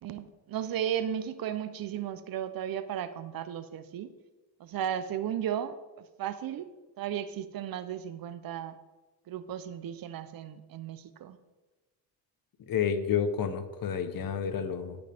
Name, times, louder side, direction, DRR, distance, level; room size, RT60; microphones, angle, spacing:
voice 1, 0.0-4.1 4.6-6.7 7.0-8.8 9.3-11.4, right 9 dB, 60° right, 13 dB, 0.7 m, -35 dB
voice 2, 12.7-15.0, left 7 dB, 60° left, 10 dB, 1.0 m, -30 dB
13.5 x 5.3 x 3.5 m, 1.2 s
cardioid pair, 75°, 39 cm